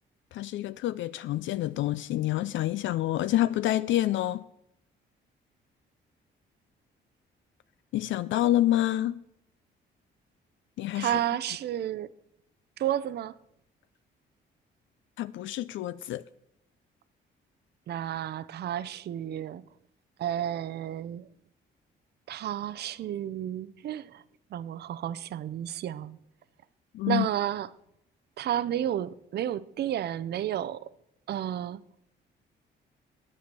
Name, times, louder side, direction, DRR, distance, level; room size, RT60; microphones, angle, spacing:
voice 1, 0.3-4.4 7.9-9.2 10.8-11.1 15.2-16.2 26.9-27.3, left 14 dB, 75° left, 0.4 m, -27 dB
voice 2, 10.9-12.1 12.8-13.4 17.9-19.6 20.2-21.3 22.3-24.2 24.5-26.2 27.1-27.7 28.4-30.9 31.3-31.8, right 11 dB, 55° right, 0.5 m, -31 dB
9.6 x 7.6 x 6.7 m
cardioid pair, 90°, 20 cm